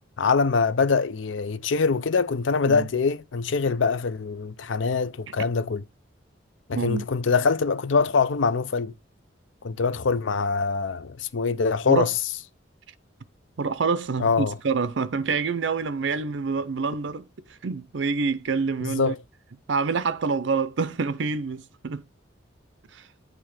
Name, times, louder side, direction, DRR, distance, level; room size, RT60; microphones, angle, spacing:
voice 1, 0.2-5.8 6.7-8.9 9.6-12.1 14.2-14.5 18.8-19.2, left 4 dB, 80° left, 0.6 m, -24 dB
voice 2, 6.7-7.1 11.9-12.1 13.6-17.3 17.6-19.1 19.7-22.0 22.9-23.1, right 4 dB, 75° right, 0.5 m, -27 dB
9.0 x 3.3 x 4.9 m
head